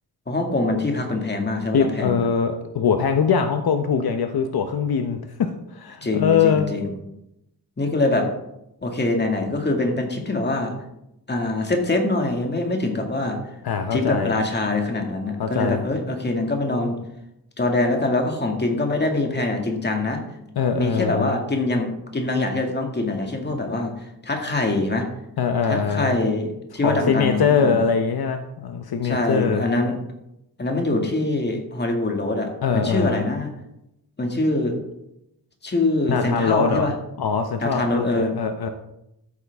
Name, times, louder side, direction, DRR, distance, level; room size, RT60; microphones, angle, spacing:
voice 1, 0.3-2.2 6.0-6.9 7.8-8.3 8.8-10.7 11.3-13.4 13.9-17.0 17.6-20.2 20.7-23.9 24.2-25.0 25.7-27.8 29.0-30.0 30.6-33.5 34.2-34.8 35.6-36.9 37.6-38.3, left 2 dB, 25° left, 2 dB, 2.0 m, -24 dB
voice 2, 1.7-6.7 13.6-14.4 15.4-15.8 20.6-21.4 25.4-26.2 26.8-29.7 32.6-33.2 36.1-36.9 37.2-38.7, left 6 dB, 70° left, 6 dB, 0.9 m, -22 dB
13.5 x 8.4 x 3.5 m, 0.85 s
wide cardioid pair, 130°, 39 cm